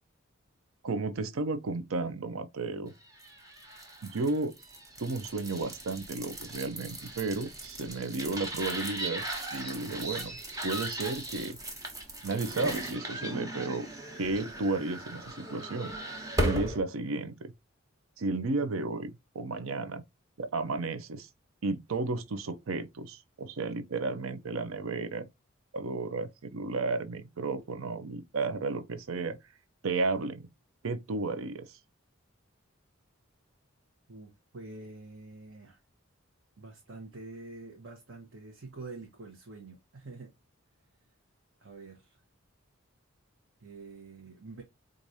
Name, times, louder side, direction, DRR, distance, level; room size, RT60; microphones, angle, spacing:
voice 1, 0.8-2.9 4.0-4.5 5.0-9.2 9.5-10.4 10.6-11.6 12.2-13.9 14.2-15.9 16.4-17.5 18.2-20.0 20.4-21.3 21.6-25.3 25.7-29.4 29.8-30.5 30.8-31.8, right 3 dB, 85° right, 0.6 m, -33 dB
sound 1, 3.1-16.8, right 1 dB, 15° right, 1.0 m, -37 dB
voice 2, 34.1-35.8 36.6-40.3 41.6-42.2 43.6-44.6, right 3 dB, 65° right, 1.0 m, -46 dB
4.6 x 2.5 x 2.6 m
head